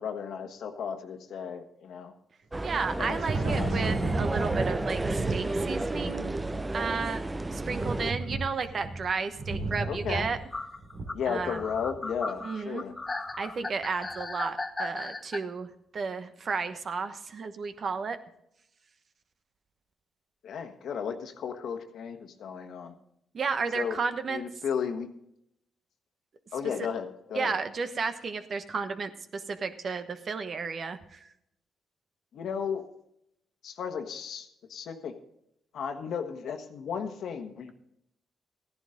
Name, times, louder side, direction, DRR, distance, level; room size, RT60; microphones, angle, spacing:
voice 1, 0.0-2.1 3.0-3.8 9.8-10.3 11.1-12.9 20.4-22.9 23.7-24.0 24.3-25.1 26.5-27.6 32.3-32.8 33.6-35.1 35.7-37.7, left 7 dB, 75° left, 6 dB, 1.3 m, -34 dB
sound 1, 2.5-8.1, right 2 dB, 20° right, 0.5 m, -32 dB
voice 2, 2.6-5.0 5.3-6.3 6.7-7.2 7.5-10.4 11.3-11.6 12.4-12.8 13.4-18.2 23.3-24.4 27.3-31.2, right 5 dB, 50° right, 9 dB, 1.1 m, -32 dB
Thunder, 2.7-12.1, right 3 dB, 75° right, 2.9 m, -34 dB
sound 2, 8.2-8.3 9.7-9.8 10.5-15.4, left 3 dB, 25° left, 1.0 m, -36 dB
15.0 x 11.0 x 3.8 m, 0.75 s
cardioid pair, 70°, 0 cm